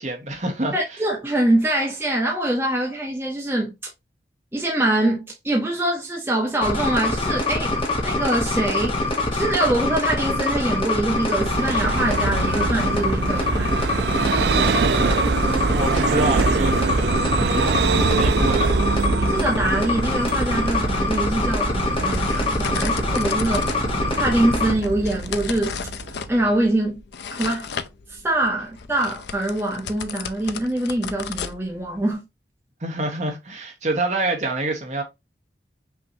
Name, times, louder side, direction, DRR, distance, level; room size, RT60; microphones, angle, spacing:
voice 1, 0.0-1.0 14.6-17.7 18.1-18.8 32.8-35.0, right 2 dB, 40° right, 1.2 m, -27 dB
voice 2, 0.7-3.7 4.5-7.7 8.0-9.0 9.3-13.7 17.4-17.6 19.2-23.7 24.2-25.8 26.3-27.0 27.3-27.7 28.1-32.2, right 1 dB, 10° right, 0.8 m, -24 dB
sound 1, 6.6-24.7, left 2 dB, 30° left, 0.9 m, -24 dB
Vehicle, 11.1-26.5, right 4 dB, 65° right, 0.4 m, -24 dB
sound 2, 21.2-32.1, left 6 dB, 70° left, 0.5 m, -36 dB
5.5 x 3.0 x 2.7 m
head